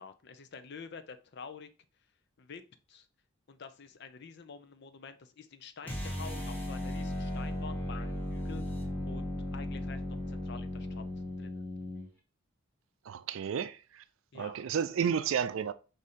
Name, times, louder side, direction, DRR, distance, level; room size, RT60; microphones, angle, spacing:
voice 1, 0.0-1.7 2.4-2.6 2.9-3.1 3.5-8.8 9.1-11.0 11.4-11.7 14.3-14.6, left 5 dB, 55° left, 0.5 m, -48 dB
sound 1, 5.8-12.1, left 1 dB, 10° left, 1.0 m, -36 dB
voice 2, 13.1-13.8 14.3-15.7, right 7 dB, 70° right, 0.4 m, -31 dB
4.9 x 2.7 x 4.1 m
head